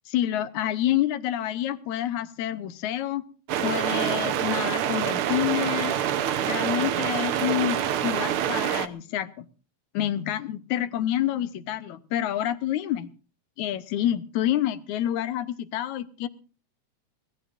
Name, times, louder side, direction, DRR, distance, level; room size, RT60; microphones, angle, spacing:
voice 1, 0.1-3.2 3.6-5.9 6.5-9.5 9.9-13.1 13.6-16.3, left 12 dB, 85° left, 12 dB, 2.3 m, -28 dB
sound 1, 3.5-8.9, right 10 dB, 70° right, 1.4 m, -26 dB
24.0 x 18.5 x 2.6 m, 0.36 s
omnidirectional pair, 3.3 m